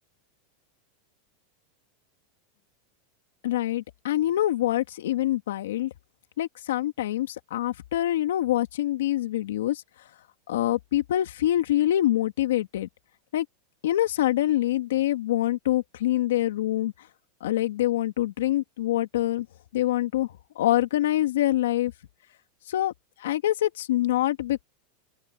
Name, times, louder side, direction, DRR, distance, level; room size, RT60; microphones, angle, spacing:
voice 1, 3.4-5.9 6.4-9.8 10.5-12.9 13.3-13.4 13.8-16.9 17.4-19.5 19.7-20.3 20.6-21.9 22.7-22.9 23.2-24.6, left 13 dB, 90° left, 2.5 m, -25 dB
open air
supercardioid pair, 150°, 0 cm